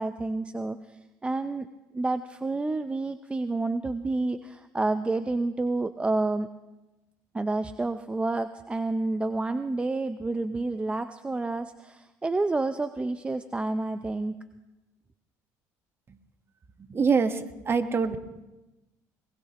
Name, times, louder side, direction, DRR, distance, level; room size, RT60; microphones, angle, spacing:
voice 1, 0.0-1.7 1.9-6.5 7.3-14.3, right 2 dB, 15° right, 10 dB, 0.5 m, -29 dB
voice 2, 16.9-17.4 17.7-18.2, right 5 dB, 30° right, 9 dB, 1.2 m, -23 dB
22.0 x 20.0 x 2.9 m, 1.0 s
supercardioid pair, 95°, 8 cm